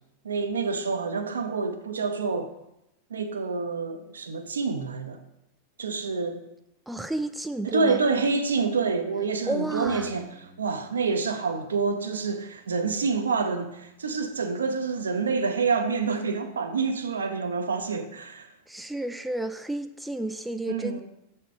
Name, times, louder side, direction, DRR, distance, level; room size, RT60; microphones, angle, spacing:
voice 1, 0.2-2.5 3.1-5.2 5.8-6.4 7.6-18.5 20.7-21.0, right 4 dB, 70° right, 0.7 m, -27 dB
voice 2, 6.9-8.0 9.5-10.2 18.7-21.0, right 1 dB, 5° right, 0.3 m, -31 dB
Bass guitar, 9.9-16.1, right 1 dB, 50° left, 2.0 m, -57 dB
6.5 x 4.3 x 4.8 m
figure-of-eight pair, 90°, 0 cm